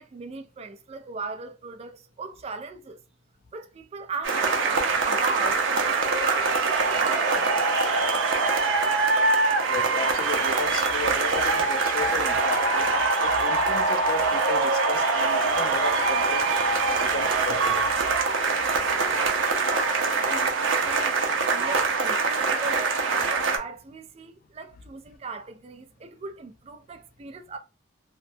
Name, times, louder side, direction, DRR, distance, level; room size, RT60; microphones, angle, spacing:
voice 1, 0.0-3.0 3.5-5.7 6.2-7.6 19.0-21.2 21.5-27.6, right 4 dB, 35° right, 0.3 m, -37 dB
sound 1, 4.2-23.6, right 3 dB, 90° right, 0.6 m, -23 dB
voice 2, 9.7-12.9 13.2-16.5 17.0-17.9, left 4 dB, 50° left, 0.3 m, -34 dB
2.9 x 2.1 x 2.6 m
head